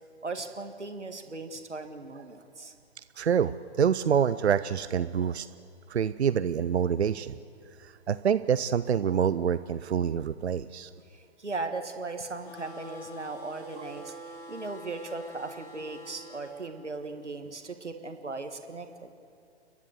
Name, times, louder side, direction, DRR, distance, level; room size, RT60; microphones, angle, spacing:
voice 1, 0.2-2.7 11.1-14.1 14.5-19.1, right 3 dB, 85° right, 7 dB, 1.6 m, -38 dB
voice 2, 3.2-5.5 5.9-7.4 7.8-10.9, right 8 dB, 70° right, 14 dB, 0.6 m, -26 dB
sound 1, 12.4-16.5, equal, 45° left, 4.8 m, -46 dB
30.0 x 11.0 x 7.9 m, 2.5 s
figure-of-eight pair, 125°, 34 cm